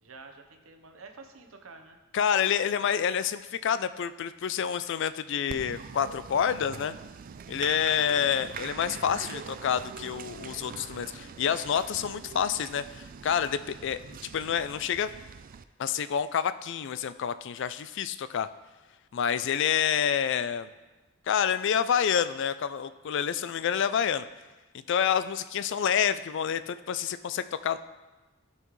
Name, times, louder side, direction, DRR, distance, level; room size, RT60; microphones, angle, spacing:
voice 1, 0.0-2.0, right 4 dB, 85° right, 5 dB, 1.0 m, -49 dB
voice 2, 2.1-7.0 7.5-15.1 15.8-18.5 19.1-20.7 21.3-24.3 24.9-27.8, left 8 dB, 60° left, 14 dB, 0.4 m, -28 dB
Applause, 5.5-15.6, right 6 dB, 45° right, 0.3 m, -43 dB
14.5 x 5.6 x 3.1 m, 1.2 s
head